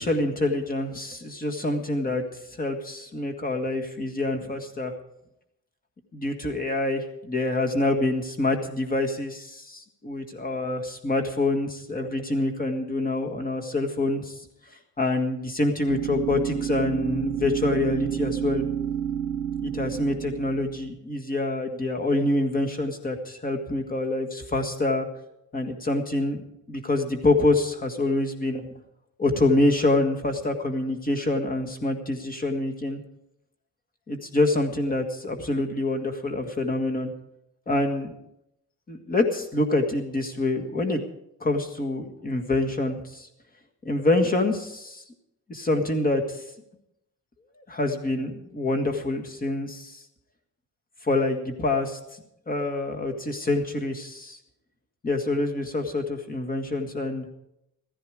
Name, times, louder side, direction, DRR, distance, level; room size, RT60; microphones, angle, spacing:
voice 1, 0.0-2.2 2.6-4.9 6.1-14.4 15.0-18.6 19.6-25.1 25.5-26.4 26.7-28.6 29.2-33.0 34.1-37.1 37.7-38.1 38.9-41.0 41.4-43.3 43.9-45.0 45.5-46.4 47.7-50.0 51.0-52.0 52.5-54.4 55.0-57.3, left 2 dB, 25° left, 4 dB, 1.8 m, -26 dB
sound 1, 15.9-20.9, right 9 dB, 60° right, 0.8 m, -30 dB
15.0 x 14.5 x 5.0 m, 0.80 s
wide cardioid pair, 155°, 32 cm